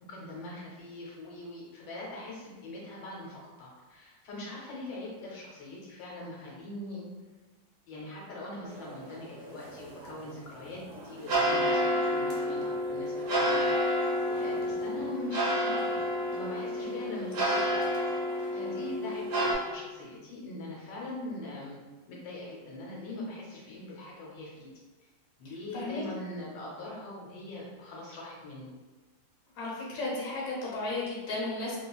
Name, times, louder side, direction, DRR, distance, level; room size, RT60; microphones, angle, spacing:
voice 1, 0.1-7.0 7.9-13.6 14.4-15.9 16.3-17.8 18.2-21.8 22.1-24.7 25.4-28.7, left 2 dB, 80° left, -3 dB, 1.3 m, -42 dB
sound 1, 8.7-19.5, equal, 65° right, 0.8 m, -30 dB
voice 2, 25.7-26.0 29.6-31.8, left 2 dB, 60° left, -5 dB, 1.0 m, -34 dB
2.9 x 2.3 x 2.2 m, 1.2 s
omnidirectional pair, 2.0 m